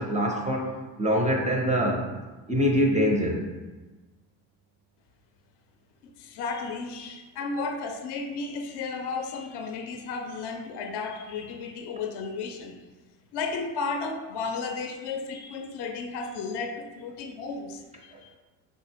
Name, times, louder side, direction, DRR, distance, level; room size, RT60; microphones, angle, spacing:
voice 1, 0.0-2.1 2.5-3.4, equal, 15° right, 1 dB, 0.4 m, -24 dB
voice 2, 6.2-12.8 13.3-18.4, left 4 dB, 55° left, 6 dB, 0.5 m, -33 dB
3.8 x 2.0 x 3.4 m, 1.2 s
supercardioid pair, 65°, 49 cm